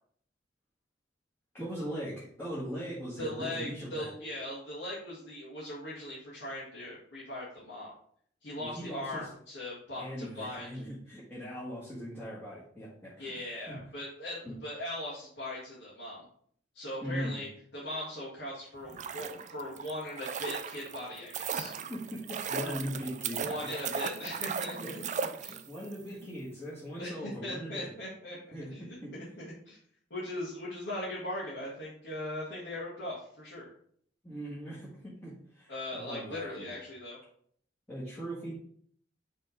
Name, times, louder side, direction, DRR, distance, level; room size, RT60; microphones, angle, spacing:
voice 1, 1.5-4.1 8.6-9.3 10.0-13.4 13.7-13.8 14.4-14.6 17.0-17.5 21.9-23.9 24.8-25.1 25.4-27.9 28.5-28.7 29.0-29.2 34.2-36.7 37.9-38.5, equal, 15° left, -9 dB, 1.8 m, -40 dB
voice 2, 3.2-7.9 8.4-10.8 13.2-16.3 16.7-17.5 17.7-21.8 23.4-25.0 25.4-25.6 27.0-29.0 29.4-29.8 30.1-33.7 35.7-37.2, left 1 dB, 70° left, -8 dB, 1.8 m, -39 dB
sound 1, 18.8-25.9 26.2-26.3, right 6 dB, 40° right, 0.4 m, -37 dB
5.7 x 3.6 x 5.0 m, 0.62 s
head